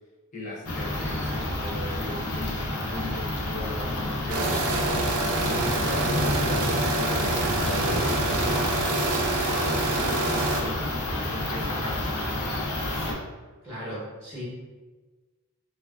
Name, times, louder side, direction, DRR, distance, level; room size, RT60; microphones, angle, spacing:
voice 1, 0.3-4.6 5.4-9.1 9.8-12.4, left 3 dB, 35° left, -5 dB, 0.6 m, -38 dB
sound 1, 0.6-13.1, left 1 dB, 75° left, 0.5 m, -29 dB
sound 2, 4.3-10.6, right 3 dB, 75° right, 0.4 m, -27 dB
voice 2, 13.6-14.4, equal, 15° right, -10 dB, 0.7 m, -37 dB
3.1 x 2.3 x 2.3 m, 1.3 s
head